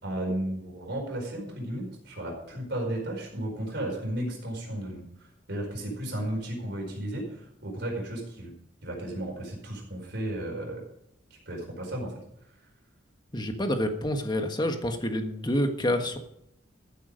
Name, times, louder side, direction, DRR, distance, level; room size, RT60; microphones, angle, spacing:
voice 1, 0.0-8.5 8.8-10.8 11.5-12.1, right 1 dB, 60° right, 0 dB, 4.8 m, -34 dB
voice 2, 13.3-16.2, left 1 dB, 25° left, 6 dB, 1.4 m, -28 dB
14.0 x 8.7 x 5.1 m, 0.78 s
head